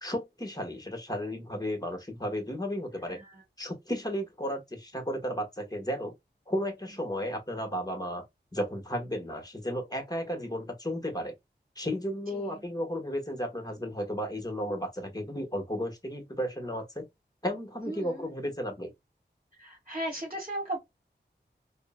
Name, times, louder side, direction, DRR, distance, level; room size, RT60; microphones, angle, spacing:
voice 1, 0.0-3.2 3.6-6.1 6.5-8.2 8.5-11.3 11.8-17.0 17.4-18.9, equal, 20° left, 1.2 m, -34 dB
voice 2, 3.0-3.4 12.3-12.6 17.8-18.3 19.5-20.8, right 1 dB, 35° right, 1.2 m, -37 dB
3.5 x 2.1 x 2.2 m
wide cardioid pair, 55°, 19 cm